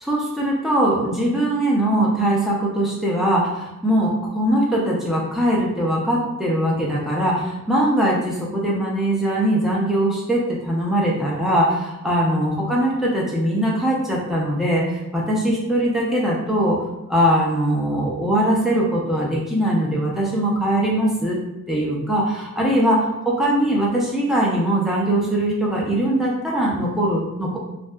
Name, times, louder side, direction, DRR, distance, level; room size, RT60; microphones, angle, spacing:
voice 1, 0.0-16.8 17.1-21.4 21.7-27.6, right 1 dB, ahead, -4 dB, 0.4 m, -21 dB
2.6 x 2.2 x 2.2 m, 0.95 s
head